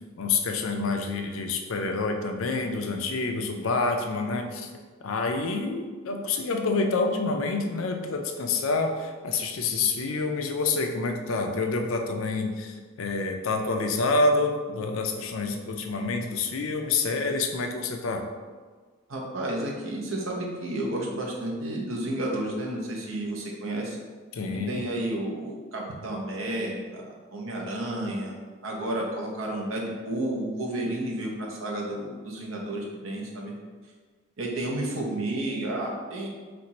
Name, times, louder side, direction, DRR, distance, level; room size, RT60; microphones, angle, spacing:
voice 1, 0.2-4.7 5.0-18.2 24.3-24.8, left 3 dB, 90° left, 4 dB, 0.5 m, -27 dB
voice 2, 19.1-24.0 24.7-28.4 28.6-33.5 34.4-36.3, right 1 dB, 80° right, -1 dB, 0.8 m, -31 dB
4.3 x 2.5 x 4.1 m, 1.5 s
head